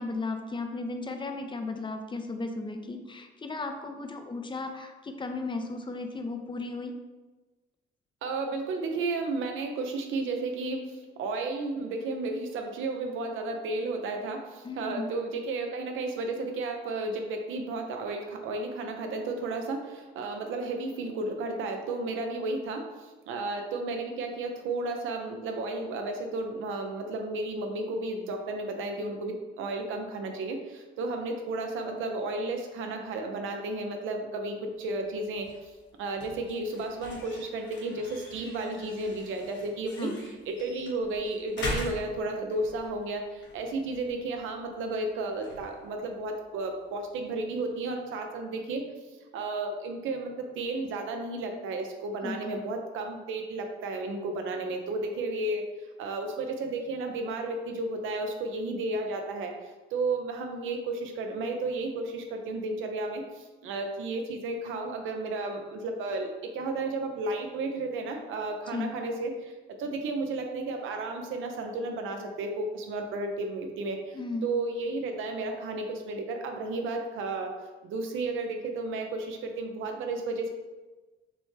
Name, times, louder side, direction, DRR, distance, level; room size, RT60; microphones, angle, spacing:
voice 1, 0.0-6.9 14.6-15.1 40.0-40.2 52.2-52.5 68.7-68.9 74.1-74.5, left 3 dB, 25° left, 6 dB, 0.4 m, -35 dB
voice 2, 8.2-35.7 36.0-40.1 40.5-48.9 49.3-55.6 56.0-74.2 74.4-77.5 77.8-80.5, right 2 dB, 85° right, 4 dB, 0.7 m, -33 dB
sound 1, 34.7-47.5, left 2 dB, 70° left, 1.1 m, -43 dB
6.0 x 2.1 x 3.2 m, 1.2 s
cardioid pair, 90°, 20 cm